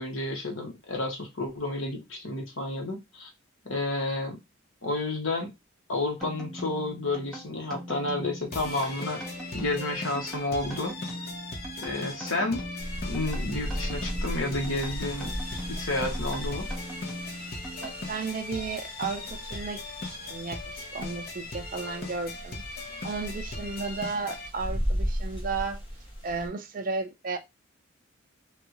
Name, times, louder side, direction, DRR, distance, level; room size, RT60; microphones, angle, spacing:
voice 1, 0.0-3.3 3.6-4.4 4.8-5.5 5.9-9.2 9.5-10.9 11.8-12.6 13.0-15.3 15.7-16.7, left 2 dB, 75° left, 1.2 m, -31 dB
sound 1, 6.2-18.4, right 1 dB, ahead, 0.8 m, -42 dB
sound 2, 8.5-24.5, left 3 dB, 45° left, 0.7 m, -39 dB
sound 3, 12.8-26.5, equal, 25° left, 1.2 m, -36 dB
voice 2, 17.8-22.6 23.0-25.8 26.2-27.4, right 4 dB, 40° right, 0.4 m, -34 dB
3.5 x 2.4 x 2.9 m
head